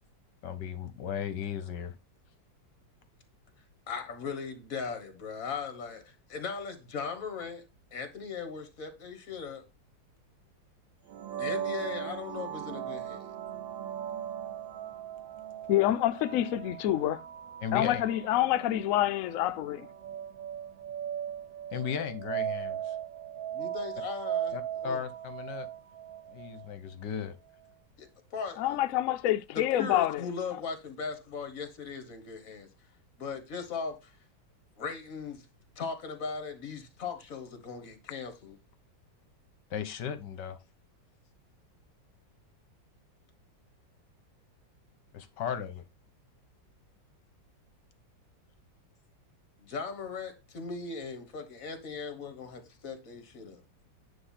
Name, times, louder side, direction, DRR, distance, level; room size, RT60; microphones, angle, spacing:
voice 1, 0.4-1.9 17.6-18.0 21.7-23.0 24.5-25.7 26.3-27.4 39.7-40.6 45.1-45.8, left 8 dB, 70° left, 1.5 m, -36 dB
voice 2, 3.9-7.6 7.9-9.6 11.4-13.3 23.5-25.0 28.0-28.8 29.5-32.7 33.2-34.2 34.8-35.5 35.7-38.6 49.6-53.6, left 5 dB, 50° left, 1.7 m, -38 dB
sound 1, 11.1-26.7, right 10 dB, 85° right, 1.5 m, -38 dB
voice 3, 15.7-17.2 17.7-19.9 28.6-30.3, left 13 dB, 90° left, 0.7 m, -27 dB
9.4 x 3.4 x 5.7 m
omnidirectional pair, 2.0 m